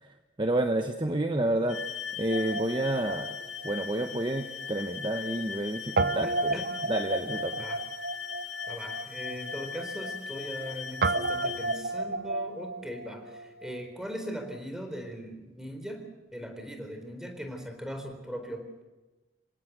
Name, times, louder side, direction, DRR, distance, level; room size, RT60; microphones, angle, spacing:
voice 1, 0.0-1.8 2.2-3.4 3.6-6.6 6.9-7.7, right 1 dB, 25° right, 6 dB, 1.1 m, -30 dB
sound 1, 1.7-11.8, left 7 dB, 85° left, 3.7 m, -39 dB
Guitar, 2.3-4.7 5.0-5.1 6.0-13.8, right 3 dB, 60° right, 0.9 m, -33 dB
voice 2, 6.2-6.7 7.6-7.8 8.7-16.1 16.3-18.7, equal, 5° right, 5 dB, 4.0 m, -39 dB
27.0 x 17.0 x 8.0 m, 1.1 s
head